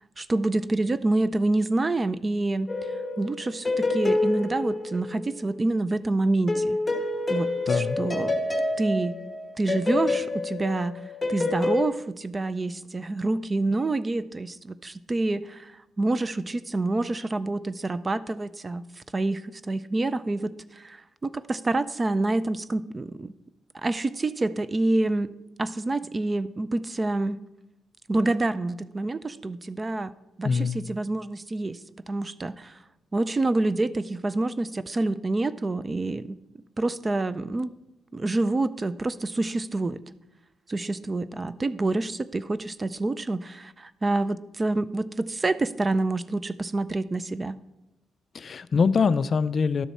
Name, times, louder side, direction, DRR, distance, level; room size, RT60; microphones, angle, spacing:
voice 1, 0.2-2.7 3.2-6.8 7.3-8.4 8.8-9.2 9.6-11.0 11.3-18.8 19.1-23.3 23.8-25.3 25.6-27.4 28.1-30.1 30.4-31.8 32.1-32.8 33.1-36.4 36.8-37.7 38.1-40.0 40.7-47.6, right 2 dB, 25° right, 16 dB, 0.4 m, -27 dB
sound 1, 2.7-5.6 6.5-11.9, left 2 dB, 15° left, 1.3 m, -28 dB
voice 2, 7.7-8.0 30.4-30.8 48.3-49.9, left 5 dB, 45° left, 14 dB, 0.3 m, -23 dB
12.0 x 6.9 x 4.2 m, 0.93 s
cardioid pair, 100°, 0 cm